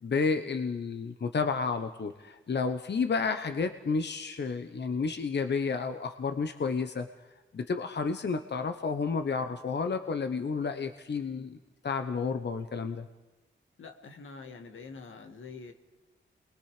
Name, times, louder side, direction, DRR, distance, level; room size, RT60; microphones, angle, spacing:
voice 1, 0.0-7.1 7.5-11.6 11.8-13.1, left 5 dB, 60° left, 8 dB, 1.1 m, -31 dB
voice 2, 13.8-15.7, left 4 dB, 80° left, 4 dB, 2.1 m, -45 dB
28.5 x 21.5 x 5.1 m, 1.1 s
cardioid pair, 55°, 20 cm